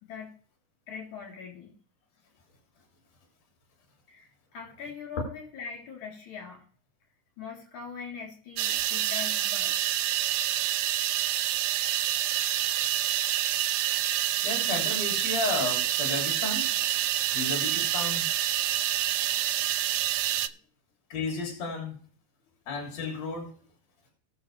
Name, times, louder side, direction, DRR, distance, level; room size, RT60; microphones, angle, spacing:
voice 1, 0.0-0.3 0.9-1.7 4.1-6.6 7.4-9.8 20.4-20.6, left 6 dB, 75° left, 0 dB, 5.0 m, -42 dB
sound 1, 8.6-20.5, right 13 dB, 90° right, 2.1 m, -27 dB
voice 2, 14.4-16.7 17.3-18.3 21.1-22.0 22.7-23.5, left 3 dB, 60° left, 0 dB, 4.3 m, -33 dB
19.5 x 6.6 x 3.3 m, 0.43 s
omnidirectional pair, 3.5 m